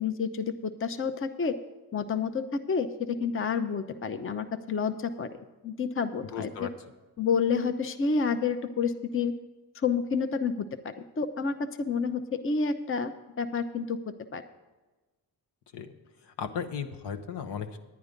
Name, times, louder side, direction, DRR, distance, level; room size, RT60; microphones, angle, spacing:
voice 1, 0.0-1.6 1.9-5.4 5.6-6.7 7.2-9.3 9.7-13.1 13.4-14.0 14.3-14.4, left 5 dB, 30° left, 10 dB, 0.7 m, -29 dB
voice 2, 6.3-6.7 15.7-15.9 16.4-17.8, left 7 dB, 75° left, 6 dB, 1.0 m, -35 dB
10.0 x 9.4 x 5.2 m, 1.2 s
cardioid pair, 70°, 42 cm